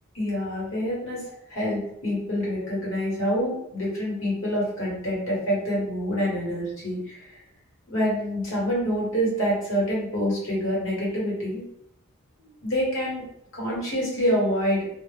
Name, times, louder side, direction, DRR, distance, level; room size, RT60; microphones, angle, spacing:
voice 1, 0.1-1.2 1.5-7.4 7.9-11.6 12.4-13.2 13.5-14.9, equal, 60° left, -5 dB, 1.1 m, -26 dB
2.1 x 2.0 x 3.2 m, 0.74 s
head